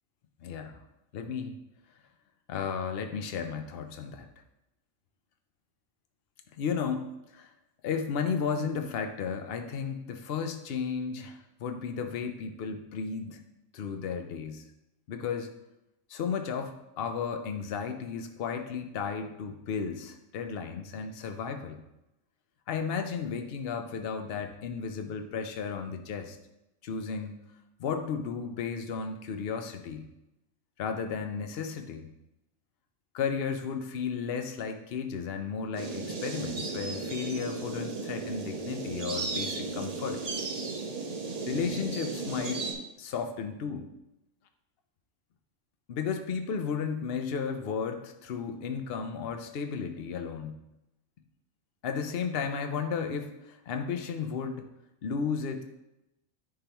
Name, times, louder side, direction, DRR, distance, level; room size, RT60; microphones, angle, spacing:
voice 1, 0.4-0.8 1.1-1.5 2.5-4.3 6.6-7.1 7.3-7.5 7.8-13.4 13.7-14.7 15.1-15.5 16.1-21.8 22.7-26.4 26.8-27.4 27.8-30.1 30.8-32.1 33.1-40.2 41.5-42.6 43.0-43.9 45.9-50.6 51.8-54.6 55.0-55.6, left 6 dB, 55° left, 6 dB, 0.8 m, -34 dB
sound 1, 35.7-42.7, right 4 dB, 45° right, 0.5 m, -35 dB
9.9 x 3.8 x 3.0 m, 0.91 s
omnidirectional pair, 1.4 m